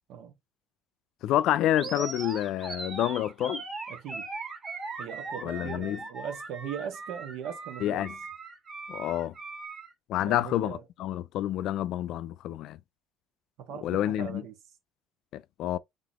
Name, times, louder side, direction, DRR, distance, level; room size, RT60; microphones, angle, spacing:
voice 1, 1.2-3.6 5.4-6.0 7.8-8.1 8.9-9.3 10.1-12.8 13.8-14.4 15.3-15.8, left 12 dB, 65° left, 0.4 m, -28 dB
Animal, 1.7-9.9, right 3 dB, 25° right, 1.7 m, -39 dB
voice 2, 3.9-4.3 5.0-8.1 10.2-10.8 13.7-14.5, right 8 dB, 70° right, 1.7 m, -39 dB
4.0 x 3.6 x 3.0 m
cardioid pair, 120°, 0 cm